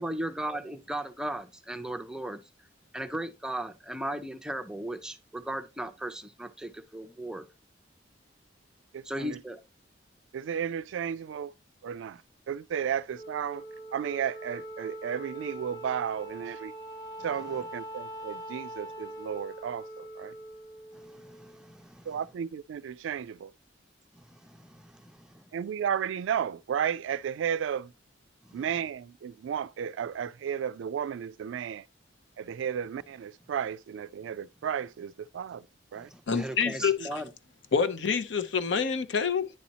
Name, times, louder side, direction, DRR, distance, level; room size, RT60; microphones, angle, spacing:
voice 1, 0.0-2.4 2.9-7.5 9.0-9.6 17.3-17.7 20.9-22.2 24.1-25.5 28.4-28.7 35.9-37.3, right 1 dB, 5° right, 0.5 m, -37 dB
voice 2, 8.9-9.4 10.3-11.5 11.8-12.2 12.5-13.6 13.9-16.7 17.2-20.3 22.1-23.5 25.5-27.9 28.5-31.8 32.4-35.6 35.9-36.1 37.0-37.1, right 8 dB, 80° right, 0.3 m, -33 dB
Wind instrument woodwind instrument, 13.1-21.7, right 1 dB, 20° left, 0.9 m, -43 dB
voice 3, 36.3-37.2 37.7-39.5, left 6 dB, 70° left, 0.6 m, -27 dB
9.6 x 4.2 x 2.7 m
head